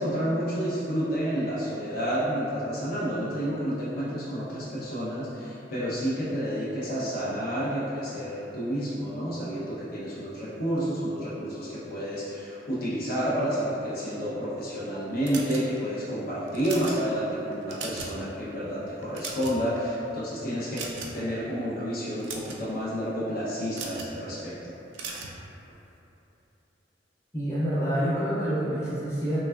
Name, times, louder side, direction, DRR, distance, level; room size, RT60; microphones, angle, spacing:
voice 1, 0.0-24.7, equal, 50° left, -9 dB, 0.5 m, -30 dB
sound 1, 15.2-16.0 16.5-17.0 17.5-18.2 18.5-18.7 19.0-19.8 20.7-21.3 22.0-22.6 23.7-24.1 24.9-25.4, right 4 dB, 80° right, 0.3 m, -38 dB
voice 2, 27.3-29.5, equal, 15° left, -11 dB, 0.7 m, -27 dB
3.3 x 2.2 x 2.2 m, 2.9 s
head